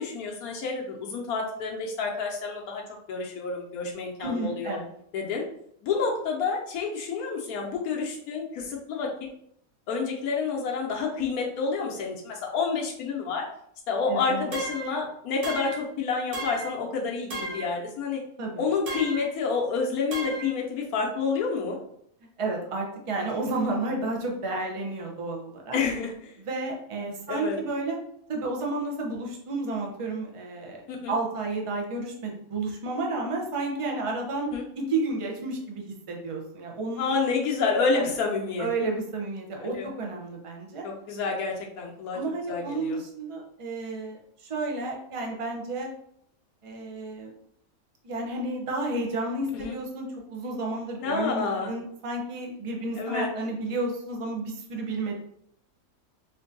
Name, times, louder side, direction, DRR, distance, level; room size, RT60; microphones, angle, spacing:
voice 1, 0.0-2.8 3.1-4.8 5.1-5.4 5.8-9.1 9.9-13.5 13.9-18.2 18.6-21.8 25.7-26.3 27.0-27.6 30.9-31.2 34.5-34.6 37.0-38.7 39.6-39.9 40.8-42.2 42.5-43.0 49.5-49.8 51.0-51.7 53.0-53.3, left 4 dB, 85° left, -1 dB, 1.2 m, -29 dB
voice 2, 4.2-4.9 14.1-14.5 18.4-18.5 22.4-25.8 26.4-28.0 28.3-37.1 37.9-38.1 38.6-40.9 42.1-45.9 46.6-47.3 48.0-55.2, right 2 dB, 45° right, 0 dB, 0.4 m, -31 dB
sound 1, 14.5-15.0 15.4-15.9 16.3-16.8 17.3-17.7 18.9-19.3 20.1-20.5, right 2 dB, 85° right, 1.5 m, -34 dB
4.4 x 2.6 x 2.6 m, 0.70 s
omnidirectional pair, 1.5 m